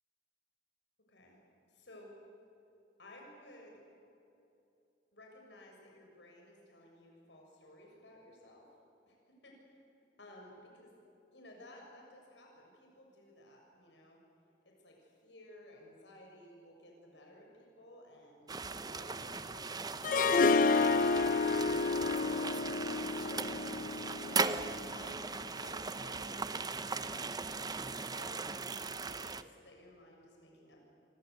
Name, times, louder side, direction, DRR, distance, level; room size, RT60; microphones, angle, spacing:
voice 1, 1.7-2.1 3.0-3.8 5.1-8.7 9.1-9.8 10.2-10.9 11.3-14.2 14.7-22.6 22.9-23.5 24.2-24.5 24.9-25.3 25.6-27.5 27.8-30.9, left 1 dB, 90° left, 0 dB, 6.9 m, -56 dB
sound 1, 18.5-29.4, right 4 dB, 25° right, 0.8 m, -38 dB
Harp, 20.0-25.1, left 4 dB, 50° left, 0.8 m, -30 dB
28.0 x 25.5 x 8.2 m, 2.8 s
head